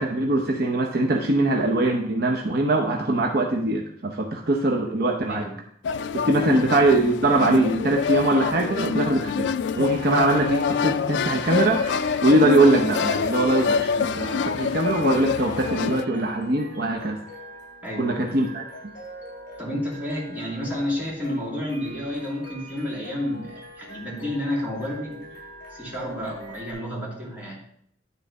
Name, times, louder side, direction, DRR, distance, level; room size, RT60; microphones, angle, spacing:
voice 1, 0.0-5.4 6.1-9.5 9.8-17.2 18.0-18.6, right 2 dB, 55° right, 1 dB, 0.8 m, -22 dB
sound 1, 5.8-16.0, left 6 dB, 65° left, 0.3 m, -26 dB
sound 2, 9.7-26.7, equal, 50° left, 3.0 m, -43 dB
voice 2, 17.8-18.2 19.6-25.2 25.7-27.6, left 1 dB, 10° right, -6 dB, 2.6 m, -30 dB
10.0 x 4.1 x 5.2 m, 0.66 s
head